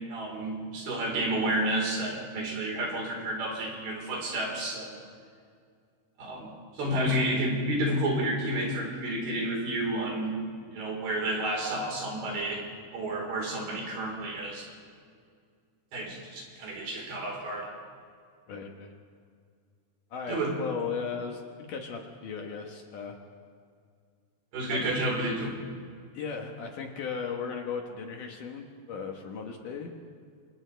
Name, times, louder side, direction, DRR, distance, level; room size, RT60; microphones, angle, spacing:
voice 1, 0.1-5.0 6.2-10.4 10.7-12.6 12.9-14.7 15.9-17.7 20.3-20.6 24.5-25.5, right 1 dB, 70° right, -1 dB, 6.3 m, -30 dB
voice 2, 18.5-18.9 20.1-23.2 24.7-25.0 26.1-29.9, left 6 dB, 65° left, 2 dB, 2.5 m, -36 dB
29.5 x 26.0 x 3.4 m, 2.2 s
omnidirectional pair, 4.7 m